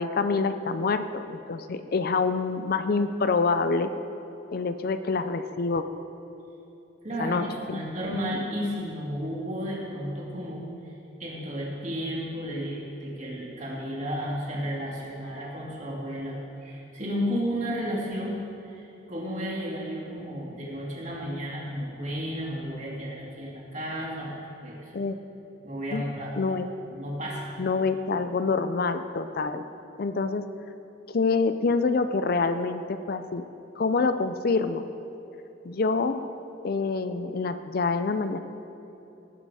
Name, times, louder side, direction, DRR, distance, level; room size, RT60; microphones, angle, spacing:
voice 1, 0.0-3.9 4.5-5.8 7.2-8.2 24.9-25.2 25.9-26.0 26.4-26.7 27.6-29.6 30.0-30.5 31.1-33.4 33.8-34.8 35.6-36.2 36.6-38.4, left 4 dB, 50° left, 10 dB, 0.4 m, -26 dB
voice 2, 7.0-10.6 11.2-18.4 18.7-24.9 25.6-26.3 26.9-27.5, equal, 35° right, -4 dB, 2.5 m, -33 dB
18.0 x 7.6 x 4.9 m, 3.0 s
head